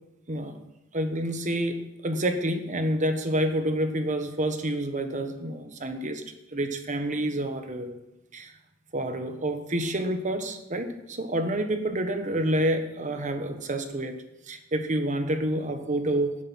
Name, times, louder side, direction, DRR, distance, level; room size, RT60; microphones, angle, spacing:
voice 1, 0.9-6.2 6.5-7.9 8.3-8.5 8.9-16.4, right 1 dB, 35° right, 7 dB, 1.3 m, -28 dB
17.0 x 7.8 x 5.7 m, 0.91 s
head